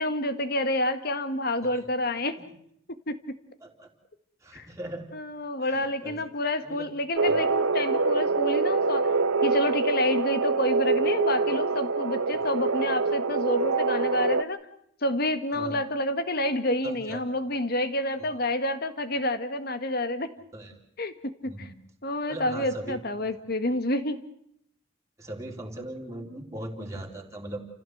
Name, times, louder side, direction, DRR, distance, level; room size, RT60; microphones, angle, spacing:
voice 1, 0.0-2.4 3.1-3.2 4.5-4.7 5.1-9.0 9.4-14.6 15.0-20.3 21.0-21.1 21.4-21.7 22.0-24.2, left 1 dB, 50° left, 10 dB, 1.7 m, -28 dB
voice 2, 4.4-5.1 5.6-6.3 6.6-6.9 7.3-7.4 15.5-15.8 16.8-17.4 18.2-18.3 20.5-20.7 21.4-21.7 22.3-23.3 23.7-23.8 25.2-27.6, right 1 dB, 15° right, 1 dB, 3.4 m, -39 dB
sound 1, 7.2-14.4, right 4 dB, 85° right, 0.9 m, -25 dB
29.0 x 15.5 x 7.9 m, 0.72 s
head